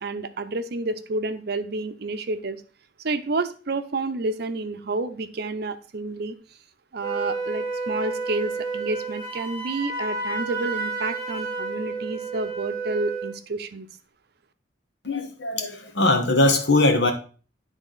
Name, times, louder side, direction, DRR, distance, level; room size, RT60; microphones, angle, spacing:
voice 1, 0.0-2.6 3.0-6.3 6.9-13.9, right 2 dB, 60° right, 9 dB, 0.6 m, -29 dB
Wind instrument woodwind instrument, 7.0-13.4, right 3 dB, 25° left, 3.7 m, -30 dB
voice 2, 15.0-17.1, left 2 dB, 80° left, 5 dB, 1.2 m, -21 dB
10.0 x 3.5 x 3.9 m, 0.37 s
head